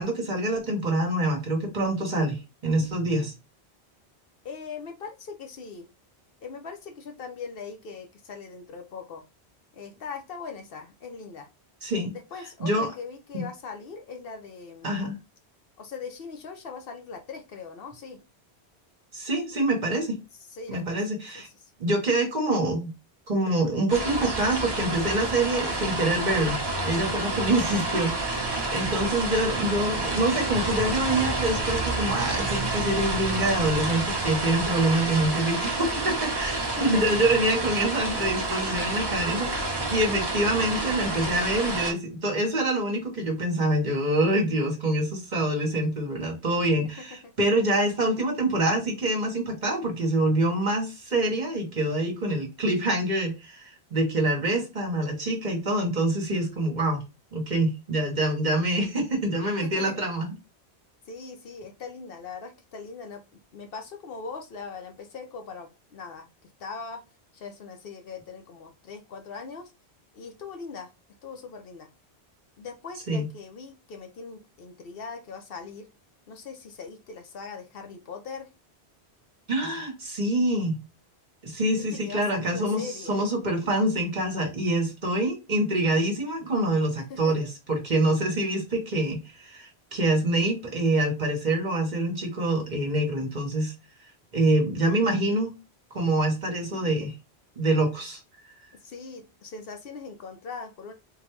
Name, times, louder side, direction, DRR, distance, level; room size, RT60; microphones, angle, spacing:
voice 1, 0.0-3.3 11.8-12.1 12.6-12.9 13.3-13.4 14.8-15.2 19.1-20.2 20.7-21.5 21.8-22.9 23.3-57.0 57.3-60.3 73.1-73.3 79.5-80.8 81.4-93.7 94.3-95.5 95.9-97.1 97.6-98.2, right 1 dB, 45° right, 1.0 m, -26 dB
voice 2, 4.4-5.9 6.4-9.2 9.7-11.5 12.1-15.0 15.8-18.2 20.3-21.1 21.3-21.7 27.6-27.9 36.6-37.2 47.0-47.3 59.6-60.0 61.1-67.0 67.3-69.7 70.1-70.9 71.2-71.9 72.6-75.9 76.3-78.5 81.8-83.2 87.1-87.5 96.7-97.1 98.7-100.9, left 5 dB, 65° left, 0.8 m, -40 dB
sound 1, 23.9-41.9, right 2 dB, 25° right, 0.8 m, -29 dB
3.7 x 2.2 x 3.1 m
omnidirectional pair, 1.1 m